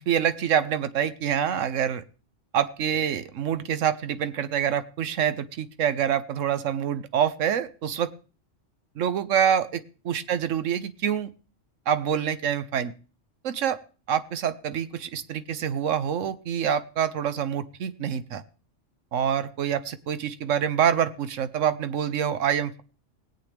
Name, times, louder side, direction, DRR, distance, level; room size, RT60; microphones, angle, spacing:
voice 1, 0.0-2.0 2.5-8.1 9.0-11.3 11.9-12.9 13.4-13.8 14.1-18.4 19.1-22.8, right 9 dB, 85° right, 13 dB, 1.2 m, -26 dB
20.0 x 8.2 x 3.4 m, 0.36 s
omnidirectional pair, 1.3 m